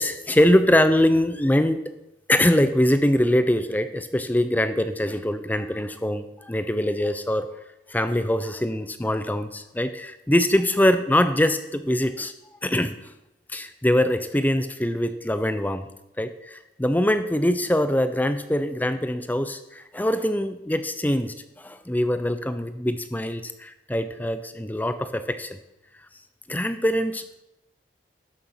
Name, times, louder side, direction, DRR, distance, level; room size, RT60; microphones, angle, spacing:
voice 1, 0.0-1.8 2.3-7.5 7.9-12.3 12.6-12.9 13.5-15.9 16.2-25.5 26.5-27.4, left 1 dB, 10° left, 10 dB, 0.6 m, -23 dB
12.5 x 6.9 x 5.7 m, 0.88 s
head